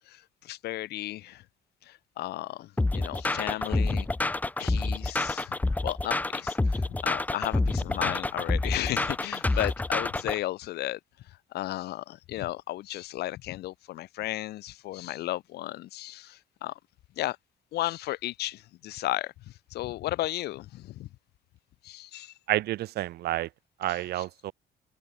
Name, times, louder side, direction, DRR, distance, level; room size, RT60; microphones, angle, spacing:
voice 1, 0.1-1.4 1.8-5.6 5.8-11.0 11.5-16.7 17.2-17.4 17.7-21.1 21.8-22.3 23.9-24.2, left 16 dB, 75° left, 1.3 m, -34 dB
sound 1, 2.8-10.4, left 2 dB, 10° left, 0.6 m, -28 dB
voice 2, 22.5-23.5 23.8-24.5, right 15 dB, 75° right, 1.9 m, -29 dB
cardioid pair, 110°, 17 cm